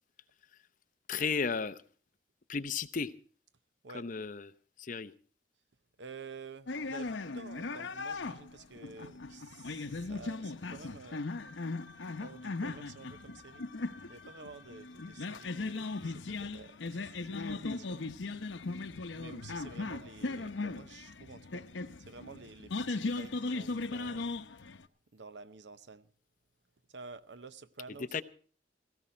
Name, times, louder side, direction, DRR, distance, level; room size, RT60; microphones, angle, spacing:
voice 1, 1.1-1.8 2.5-3.1 3.9-4.5 4.8-5.1 28.1-28.2, left 5 dB, 45° left, 0.7 m, -34 dB
voice 2, 6.0-11.2 12.2-13.6 14.1-18.0 19.2-21.7 22.0-24.4 25.1-26.1 26.9-28.2, right 4 dB, 75° right, 0.8 m, -50 dB
sound 1, 6.7-24.8, left 3 dB, 85° left, 0.8 m, -38 dB
17.0 x 15.5 x 4.3 m
head